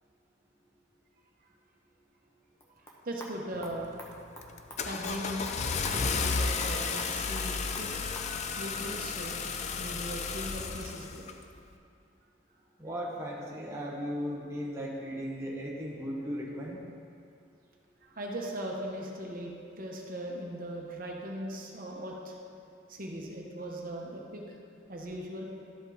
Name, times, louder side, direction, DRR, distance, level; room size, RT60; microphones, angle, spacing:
sound 1, 2.6-8.3, equal, 15° left, 0.9 m, -48 dB
voice 1, 3.0-3.9 4.8-5.5 5.9-7.9 8.6-11.2 18.0-22.3 22.9-24.6 24.9-25.5, right 1 dB, 45° right, -1 dB, 0.9 m, -39 dB
Car / Engine starting, 3.6-4.0 4.4-11.4, left 5 dB, 35° left, 0.4 m, -33 dB
voice 2, 12.8-16.8, equal, 15° right, -4 dB, 0.8 m, -36 dB
12.0 x 5.3 x 3.9 m, 2.4 s
head